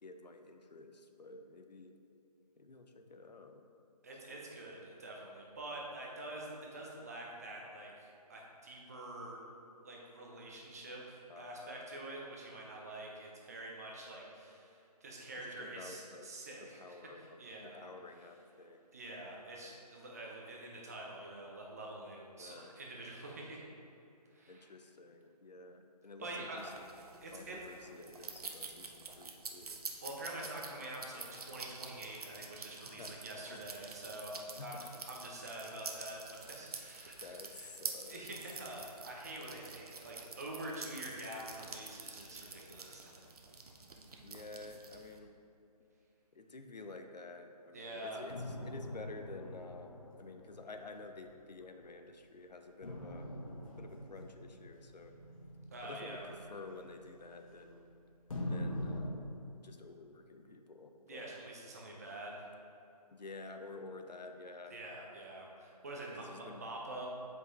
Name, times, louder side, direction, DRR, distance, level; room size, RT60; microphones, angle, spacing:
voice 1, 0.0-1.9 2.6-3.6 4.3-4.4 11.3-11.9 15.4-16.3 16.6-18.8 22.4-22.7 24.5-26.7 27.3-29.8 32.8-33.1 33.5-33.6 34.5-35.0 37.2-38.3 44.2-45.3 46.3-53.3 53.6-55.2 55.8-57.9 58.5-59.3 59.6-61.3 63.1-64.7 66.1-66.6, left 3 dB, 85° left, 6 dB, 0.7 m, -51 dB
voice 2, 4.0-9.4 9.8-17.9 18.9-23.7 24.3-24.7 26.2-26.7 27.2-27.7 30.0-37.7 38.1-43.2 47.7-48.2 55.7-56.3 61.1-62.4 64.7-67.1, right 1 dB, 25° right, -2 dB, 0.7 m, -46 dB
sound 1, 26.6-45.2, right 4 dB, 65° right, 0.8 m, -48 dB
sound 2, 48.3-52.0 52.8-57.8 58.3-59.1, left 1 dB, 55° left, 1.2 m, -44 dB
7.6 x 5.3 x 3.2 m, 2.8 s
figure-of-eight pair, 165°, 21 cm